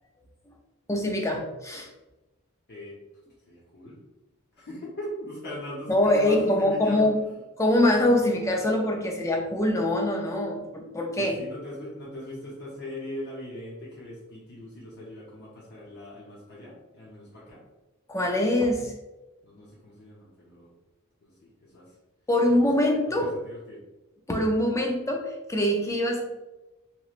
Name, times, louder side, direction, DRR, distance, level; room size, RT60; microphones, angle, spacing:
voice 1, 0.9-1.9 5.9-7.1 7.6-11.4 18.1-18.9 22.3-23.3 24.3-26.2, left 1 dB, 15° left, 1 dB, 0.4 m, -24 dB
voice 2, 3.5-4.0 4.6-7.4 11.2-17.6 19.4-20.7 21.2-21.3 21.6-21.9 22.5-23.8, left 1 dB, 50° left, -5 dB, 0.7 m, -40 dB
3.0 x 3.0 x 2.4 m, 1.0 s
head